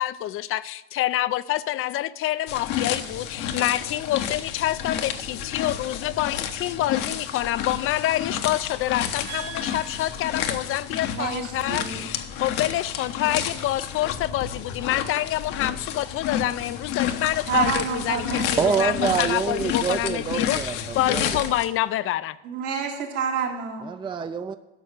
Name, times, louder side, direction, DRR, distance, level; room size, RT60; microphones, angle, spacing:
voice 1, 0.0-22.4, left 14 dB, 50° left, 0.4 m, -27 dB
sound 1, 2.5-21.7, left 9 dB, 75° left, 1.1 m, -30 dB
voice 2, 9.3-10.1 11.1-12.0 17.5-19.1 22.4-23.9, right 7 dB, 75° right, 2.5 m, -29 dB
voice 3, 18.6-21.5 23.8-24.6, right 6 dB, 15° right, 0.4 m, -26 dB
11.0 x 6.2 x 6.5 m
supercardioid pair, 100°, 29 cm